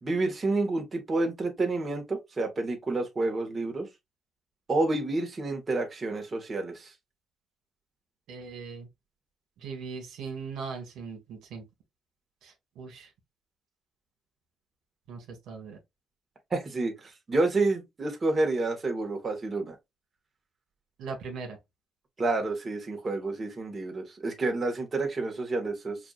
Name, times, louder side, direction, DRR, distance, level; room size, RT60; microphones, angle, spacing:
voice 1, 0.0-3.9 4.7-6.9 16.5-19.7 22.2-26.0, right 2 dB, 35° right, 1.5 m, -29 dB
voice 2, 8.3-8.9 9.6-11.6 12.4-13.1 15.1-15.8 21.0-21.6, right 5 dB, 80° right, 1.5 m, -39 dB
5.7 x 2.6 x 2.4 m
cardioid pair, 90°, 0 cm